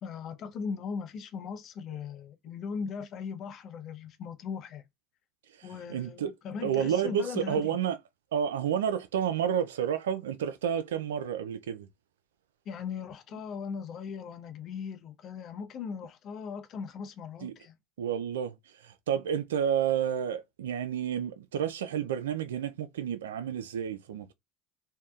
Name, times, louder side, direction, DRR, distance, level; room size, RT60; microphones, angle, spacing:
voice 1, 0.0-4.8 5.6-7.8 12.7-17.7, left 6 dB, 50° left, 0.6 m, -39 dB
voice 2, 5.6-6.3 6.6-8.0 8.3-11.9 17.4-17.5 18.0-18.5 18.8-24.3, right 8 dB, 85° right, 0.3 m, -30 dB
2.7 x 2.1 x 2.3 m
hypercardioid pair, 80°, 0 cm